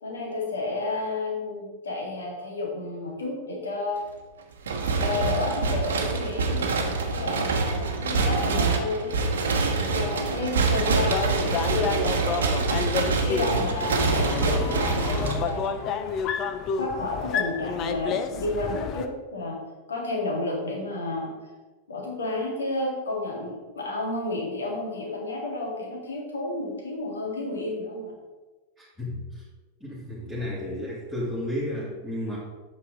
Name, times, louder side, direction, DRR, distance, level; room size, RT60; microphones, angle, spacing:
voice 1, 0.0-4.0 4.8-6.8 7.0-9.2 9.7-12.6 13.2-16.1 16.8-19.6 19.9-21.3 21.9-28.1, left 2 dB, 70° left, 0 dB, 2.0 m, -31 dB
sound 1, 4.6-15.8, right 4 dB, 65° right, 1.0 m, -25 dB
sound 2, 11.1-19.1, left 7 dB, 35° left, 0.6 m, -30 dB
voice 2, 28.8-29.4 29.8-32.4, left 1 dB, 5° left, -9 dB, 2.2 m, -33 dB
8.3 x 6.6 x 3.9 m, 1.2 s
figure-of-eight pair, 90°, 0 cm